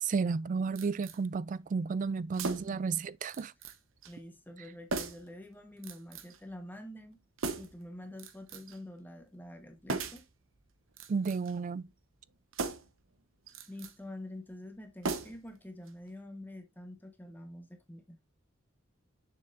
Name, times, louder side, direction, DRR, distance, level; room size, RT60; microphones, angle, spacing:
voice 1, 0.0-3.5 11.1-11.9, right 5 dB, 40° right, 0.3 m, -32 dB
sound 1, 0.8-1.2 2.3-2.9 3.3-3.8 4.0-4.2 4.9-5.3 5.8-6.4 7.4-7.8 8.2-8.8 9.9-10.3 10.9-11.6 12.5-13.0 13.5-13.9 15.0-15.6 15.9-16.0, right 3 dB, 90° right, 0.9 m, -38 dB
voice 2, 4.0-7.2 7.6-10.2 13.7-18.2, left 1 dB, 10° left, 1.0 m, -47 dB
6.8 x 6.8 x 2.5 m
head